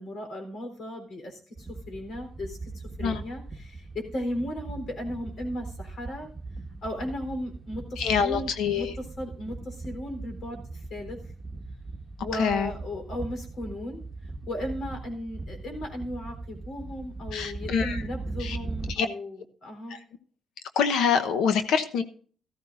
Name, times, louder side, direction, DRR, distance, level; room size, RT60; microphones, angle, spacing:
voice 1, 0.0-1.4 1.9-6.3 6.8-11.2 12.2-14.0 14.5-20.0, left 1 dB, 60° left, 4 dB, 3.8 m, -36 dB
sound 1, 1.6-18.9, right 3 dB, 15° right, 1.6 m, -39 dB
voice 2, 8.0-8.9 12.4-12.7 17.3-18.0 18.4-18.6 18.9-19.1 19.9-20.0 20.8-22.0, left 6 dB, 80° left, 8 dB, 1.0 m, -25 dB
14.0 x 13.5 x 2.6 m, 0.43 s
cardioid pair, 90°, 0 cm